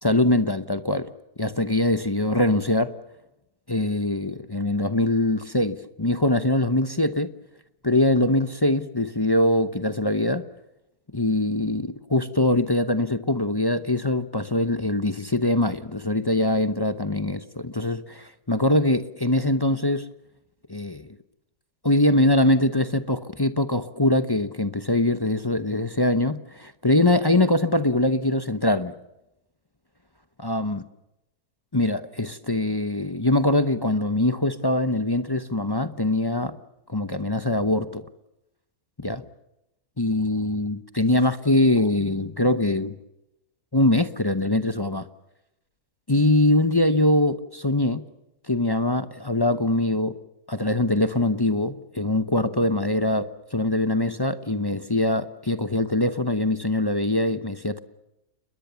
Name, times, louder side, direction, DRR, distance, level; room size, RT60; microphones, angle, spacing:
voice 1, 0.0-1.1 1.4-2.9 3.7-7.3 7.8-10.4 11.1-20.0 20.7-21.1 21.8-28.9 30.4-30.8 31.7-36.5 36.9-38.0 39.0-39.2 40.0-42.9 43.7-45.0 46.1-48.0 48.5-50.1 50.5-57.8, left 1 dB, 20° left, 10 dB, 0.6 m, -23 dB
30.0 x 21.0 x 7.0 m, 0.89 s
omnidirectional pair, 1.7 m